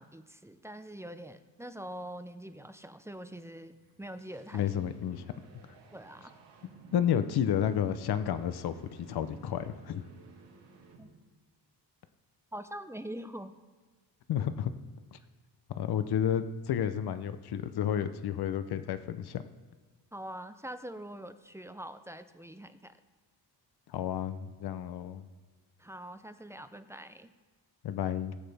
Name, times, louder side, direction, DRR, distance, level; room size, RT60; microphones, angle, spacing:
voice 1, 0.0-3.7 4.0-4.6 5.9-6.4 11.0-11.1 12.5-13.6 20.1-23.0 25.8-27.3, right 1 dB, 5° right, 10 dB, 0.4 m, -44 dB
sound 1, 3.7-11.4, right 5 dB, 80° right, 2.2 m, -55 dB
voice 2, 4.5-5.2 6.9-10.1 14.3-14.7 15.1-15.2 15.7-19.4 23.9-25.3 27.8-28.4, left 9 dB, 65° left, 12 dB, 0.7 m, -31 dB
18.5 x 8.7 x 3.4 m, 1.4 s
wide cardioid pair, 155°, 42 cm